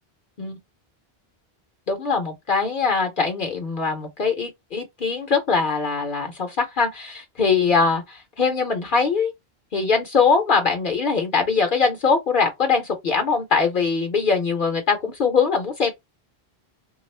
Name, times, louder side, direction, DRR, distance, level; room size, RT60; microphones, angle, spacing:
voice 1, 1.9-9.3 9.7-15.9, left 5 dB, 55° left, 0.9 m, -22 dB
3.3 x 2.4 x 3.3 m
omnidirectional pair, 1.0 m